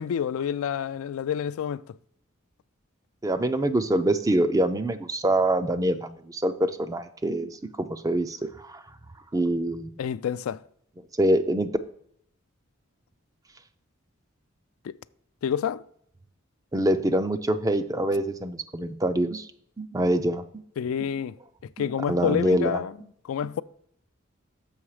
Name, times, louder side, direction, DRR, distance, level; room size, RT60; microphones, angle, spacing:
voice 1, 0.0-2.0 10.0-10.6 14.8-14.9 15.4-15.8 20.8-21.4 21.8-22.9 23.3-23.6, left 8 dB, 85° left, 0.3 m, -28 dB
voice 2, 3.2-7.5 7.8-8.8 9.3-9.9 11.2-11.7 16.7-19.5 19.8-20.4 21.0-21.1 22.1-22.8, right 1 dB, 15° right, 0.4 m, -25 dB
7.2 x 5.5 x 4.8 m
head